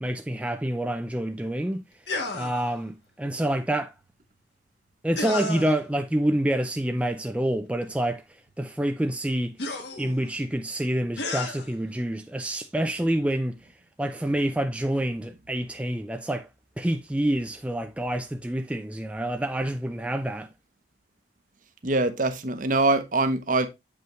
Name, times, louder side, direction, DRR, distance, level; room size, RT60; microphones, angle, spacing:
voice 1, 0.0-1.8 2.3-3.9 5.0-9.6 10.0-13.7 14.0-16.5 16.8-20.5, right 1 dB, 5° right, 0.3 m, -27 dB
sound 1, 2.1-2.8 5.2-5.8 7.9-8.0 9.6-10.3 11.2-11.7, left 3 dB, 60° left, 1.4 m, -32 dB
voice 2, 21.8-23.7, right 2 dB, 45° right, 0.8 m, -23 dB
7.6 x 5.5 x 3.0 m
head